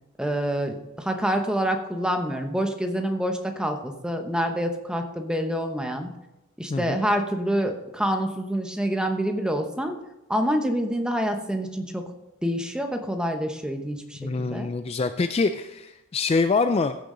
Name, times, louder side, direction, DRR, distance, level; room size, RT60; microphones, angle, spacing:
voice 1, 0.2-6.1 6.6-10.0 10.3-12.1 12.4-14.7, equal, 5° right, 5 dB, 0.9 m, -27 dB
voice 2, 14.2-17.0, left 4 dB, 30° left, 9 dB, 0.3 m, -25 dB
15.5 x 6.9 x 3.8 m, 0.95 s
head